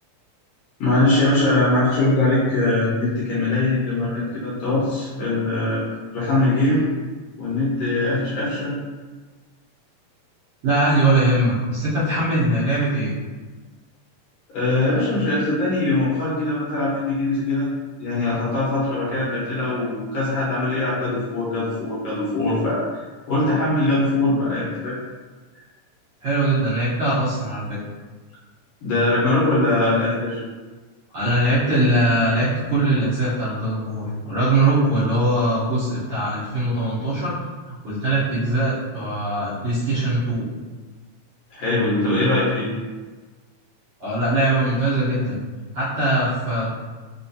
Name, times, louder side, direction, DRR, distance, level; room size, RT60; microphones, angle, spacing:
voice 1, 0.8-5.8 6.1-6.9 7.4-8.7 14.5-17.7 18.0-25.0 28.8-30.4 41.5-42.7, left 2 dB, 70° left, -9 dB, 1.9 m, -21 dB
voice 2, 10.6-13.1 26.2-27.8 31.1-37.3 37.7-40.5 44.0-45.4 45.7-46.7, right 1 dB, 60° right, -12 dB, 1.5 m, -21 dB
4.7 x 2.4 x 2.7 m, 1.3 s
omnidirectional pair, 3.3 m